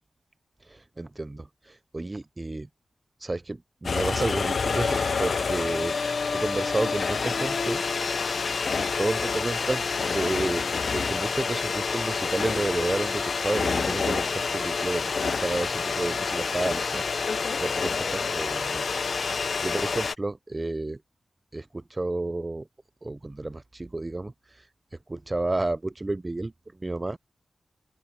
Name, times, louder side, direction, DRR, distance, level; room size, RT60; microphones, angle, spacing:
voice 1, 0.7-2.7 3.2-6.0 6.3-7.8 8.8-17.0 17.6-18.8 19.6-21.0 21.5-22.7 23.0-24.3 25.1-27.2, right 2 dB, 30° right, 0.6 m, -31 dB
sound 1, 3.8-20.1, left 5 dB, 70° left, 0.8 m, -28 dB
open air
cardioid pair, 65°, 0 cm